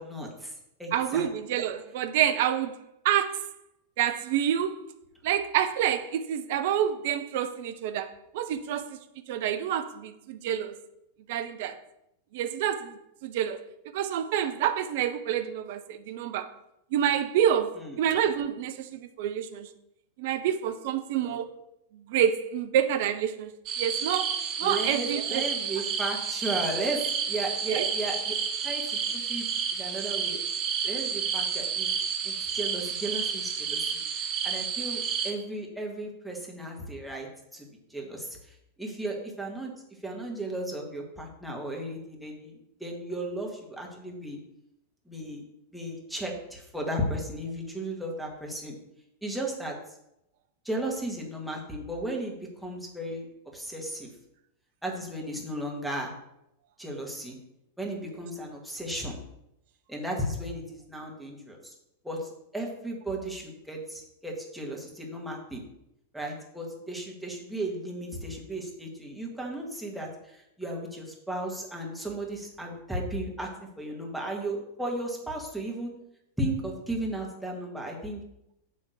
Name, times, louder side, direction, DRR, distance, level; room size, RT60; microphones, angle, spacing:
voice 1, 0.0-1.2 17.8-17.9 21.2-21.4 24.6-28.3 28.6-30.4 30.8-31.9 32.2-39.7 40.0-42.5 42.8-44.4 45.1-45.4 45.7-48.8 49.2-49.8 50.6-52.3 52.6-53.3 53.5-54.1 54.8-56.1 56.8-57.4 57.8-59.2 59.9-61.7 62.0-65.6 66.1-75.9 76.4-78.2, right 1 dB, ahead, 1.7 m, -35 dB
voice 2, 0.9-2.8 3.0-3.5 4.0-4.9 5.2-9.0 9.3-10.8 11.3-11.8 12.3-13.6 13.9-16.5 16.9-19.7 20.2-21.5 21.9-23.5 23.8-25.5 27.7-27.9, right 10 dB, 50° right, 0.6 m, -28 dB
sound 1, 23.7-35.3, right 7 dB, 35° right, 1.1 m, -30 dB
7.6 x 3.6 x 6.4 m
figure-of-eight pair, 90°, 0 cm